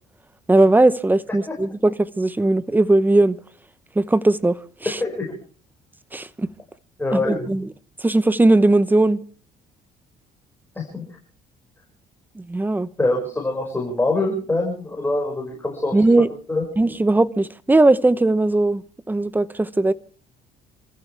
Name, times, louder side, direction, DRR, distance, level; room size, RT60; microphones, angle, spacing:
voice 1, 0.5-3.4 3.9-5.0 6.1-6.5 7.1-7.7 8.0-9.2 12.4-12.9 15.9-16.3 16.8-19.9, right 2 dB, 10° right, 0.9 m, -18 dB
voice 2, 5.0-5.4 7.0-7.5 10.8-11.0 13.0-16.0 16.5-16.6, left 2 dB, 10° left, 5.9 m, -24 dB
28.0 x 15.0 x 3.5 m
cardioid pair, 110°, 17 cm